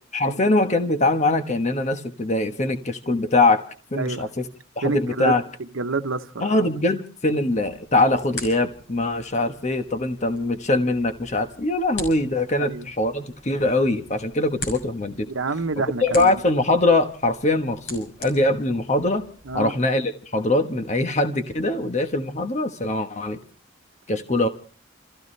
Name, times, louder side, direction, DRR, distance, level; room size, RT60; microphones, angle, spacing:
voice 1, 0.1-3.6 3.9-4.5 4.8-5.4 6.4-15.3 16.0-19.2 19.5-23.4 24.1-24.5, left 2 dB, 35° left, 1.2 m, -22 dB
voice 2, 4.8-6.5 12.6-12.9 15.3-16.4 19.5-19.7, right 3 dB, 85° right, 1.0 m, -28 dB
sound 1, 7.5-19.6, left 2 dB, 65° left, 6.3 m, -42 dB
29.0 x 15.0 x 3.3 m
head